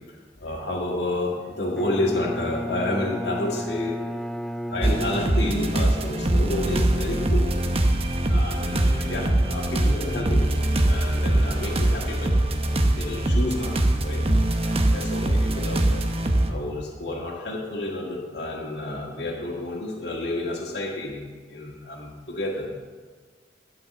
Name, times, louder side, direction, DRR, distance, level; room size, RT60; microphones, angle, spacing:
voice 1, 0.1-4.0 4.7-7.6 8.3-10.4 10.8-12.3 12.9-14.2 14.9-16.0 16.4-21.2 21.5-22.7, left 1 dB, 70° left, -2 dB, 1.8 m, -30 dB
Bowed string instrument, 1.8-6.0, equal, ahead, 0.3 m, -33 dB
sound 1, 4.8-16.5, right 1 dB, 35° right, 0.8 m, -22 dB
12.0 x 5.8 x 7.9 m, 1.5 s
head